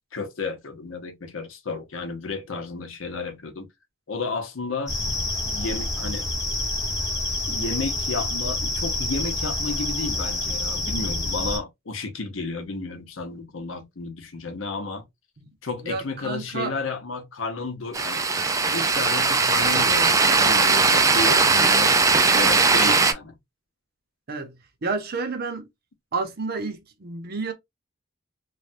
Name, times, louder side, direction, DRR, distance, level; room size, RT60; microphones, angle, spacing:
voice 1, 0.1-3.7 4.1-4.9 5.5-6.3 6.9-7.0 7.5-15.0 15.6-18.2 18.7-23.4, left 3 dB, 75° left, 0.8 m, -32 dB
sound 1, 4.9-11.6, left 2 dB, 15° left, 1.0 m, -27 dB
voice 2, 15.8-16.7 21.2-21.5 24.3-24.6 24.8-25.7 26.1-27.5, right 4 dB, 50° right, 0.7 m, -30 dB
sound 2, 17.9-23.1, right 4 dB, 15° right, 0.3 m, -19 dB
3.2 x 2.2 x 2.5 m
head